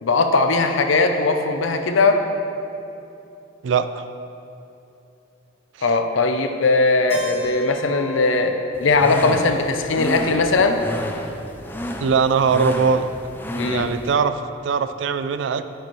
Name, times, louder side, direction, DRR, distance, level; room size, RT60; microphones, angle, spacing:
voice 1, 0.0-2.2 5.8-10.8 13.5-13.9, left 3 dB, 85° left, 6 dB, 0.6 m, -19 dB
voice 2, 3.6-4.0 5.8-5.9 12.0-13.1 13.6-15.6, right 5 dB, 70° right, 11 dB, 0.3 m, -21 dB
Keyboard (musical), 7.1-11.0, left 2 dB, 30° right, 1.2 m, -38 dB
sound 1, 8.7-14.1, left 1 dB, 10° left, 0.3 m, -31 dB
9.6 x 6.7 x 3.1 m, 2.8 s
head